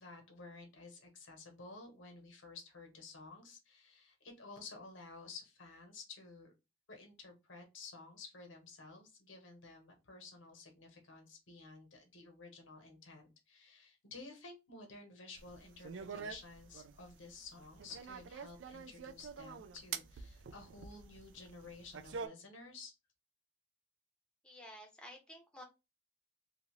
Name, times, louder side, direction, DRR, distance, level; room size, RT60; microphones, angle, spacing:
voice 1, 0.0-6.5 6.9-22.9, left 3 dB, 85° left, 3 dB, 1.0 m, -53 dB
sound 1, 15.4-22.3, right 6 dB, 70° right, 0.4 m, -47 dB
voice 2, 24.4-25.6, equal, 5° left, 1 dB, 0.6 m, -52 dB
2.7 x 2.4 x 3.1 m, 0.26 s
head